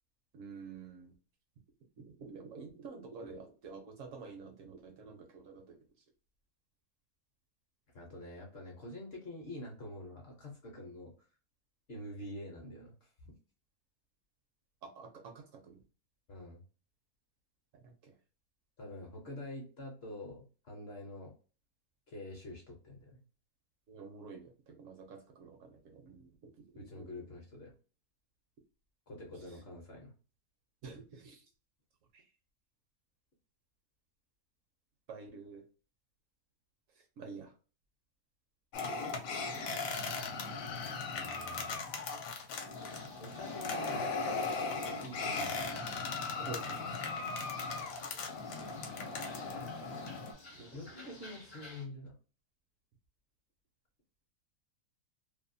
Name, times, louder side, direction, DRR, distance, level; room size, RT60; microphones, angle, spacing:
voice 1, 0.3-1.1 2.0-5.8 14.8-15.8 17.8-18.1 23.9-27.1 30.8-31.4 32.1-32.2 35.1-35.6 37.2-37.5 46.4-46.8 50.6-50.9, right 4 dB, 70° right, 4 dB, 0.8 m, -49 dB
voice 2, 7.9-11.1 11.9-13.1 16.3-16.6 18.8-21.3 22.1-23.2 26.8-27.7 29.1-30.1 41.1-41.8 43.2-44.1 44.9-45.6 50.7-52.1, left 1 dB, 55° left, 0 dB, 0.8 m, -46 dB
sound 1, 38.7-50.3, left 4 dB, 75° left, 1.0 m, -38 dB
sound 2, 42.7-51.9, left 1 dB, 35° left, 0.4 m, -55 dB
2.6 x 2.2 x 2.5 m, 0.37 s
omnidirectional pair, 1.6 m